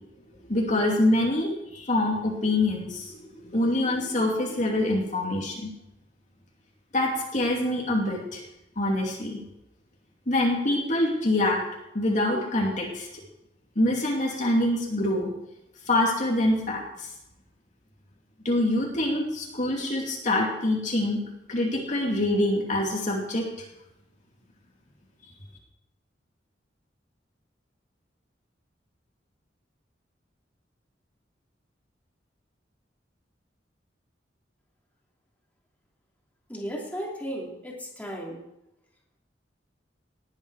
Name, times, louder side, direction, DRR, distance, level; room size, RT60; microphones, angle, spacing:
voice 1, 0.5-5.7 6.9-8.4 8.8-9.4 10.3-11.6 11.9-13.1 13.8-15.3 15.9-17.1 18.4-21.2 21.5-23.5, left 1 dB, 45° left, -1 dB, 2.7 m, -25 dB
voice 2, 36.5-38.4, equal, 10° left, -3 dB, 3.1 m, -35 dB
19.0 x 9.7 x 4.9 m, 0.87 s
head